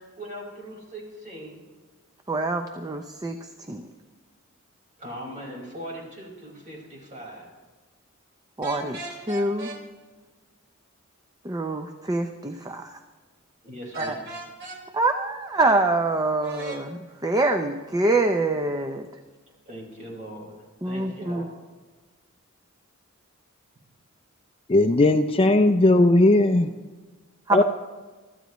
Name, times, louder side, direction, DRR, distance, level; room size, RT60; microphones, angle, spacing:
voice 1, 0.2-1.6 5.0-7.5 13.6-14.2 19.6-20.5 20.8-21.5, equal, 35° right, -2 dB, 5.0 m, -39 dB
voice 2, 2.3-3.4 3.7-3.8 8.6-9.0 9.3-9.7 11.4-13.0 14.0-14.2 14.9-19.1 20.8-21.5 27.5-27.6, right 2 dB, 15° right, 6 dB, 0.6 m, -25 dB
sound 1, 8.6-9.8 13.9-14.8 16.4-16.8, right 2 dB, 55° right, 2.8 m, -36 dB
voice 3, 24.7-26.7 27.5-27.6, left 2 dB, 25° left, 8 dB, 0.5 m, -17 dB
24.0 x 13.5 x 3.1 m, 1.3 s
head